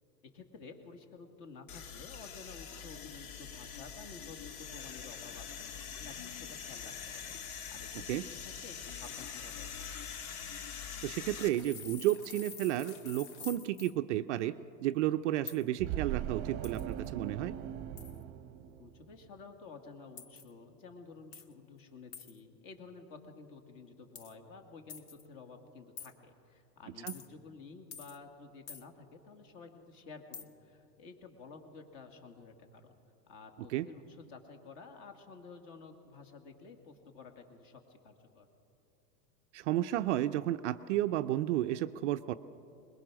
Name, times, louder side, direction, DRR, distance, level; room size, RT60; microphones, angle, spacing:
voice 1, 0.3-5.7 6.0-9.9 18.7-32.9 33.3-38.5, left 4 dB, 40° left, 5 dB, 2.4 m, -52 dB
sound 1, 1.7-11.5, left 7 dB, 55° left, 1.6 m, -44 dB
voice 2, 11.0-14.5 14.8-17.5 27.0-27.1 33.7-33.9 39.5-42.3, right 14 dB, 45° right, 9 dB, 0.5 m, -32 dB
sound 2, 11.4-13.9 15.5-15.6 16.6-17.1 18.0-18.2 20.2-20.5 21.3-21.5 22.1-22.4 24.2-24.3 24.9-25.3 26.0-26.1 27.1-27.3 27.9-28.2 28.7-28.8 30.3-30.4, left 6 dB, 20° left, 0.4 m, -47 dB
sound 3, 15.8-19.3, right 11 dB, 30° right, 0.9 m, -39 dB
22.0 x 21.0 x 6.2 m, 2.7 s
hypercardioid pair, 140°, 50 cm